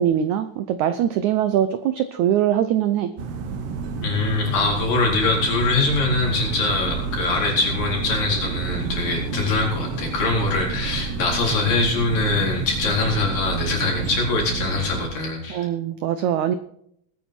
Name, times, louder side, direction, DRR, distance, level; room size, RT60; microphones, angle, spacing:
voice 1, 0.0-3.1 15.5-16.6, right 10 dB, 80° right, 11 dB, 1.7 m, -22 dB
sound 1, 3.2-15.1, right 5 dB, 60° right, 1.7 m, -29 dB
voice 2, 4.0-15.7, left 3 dB, 70° left, -1 dB, 5.7 m, -23 dB
20.0 x 9.1 x 4.4 m, 0.69 s
omnidirectional pair, 4.2 m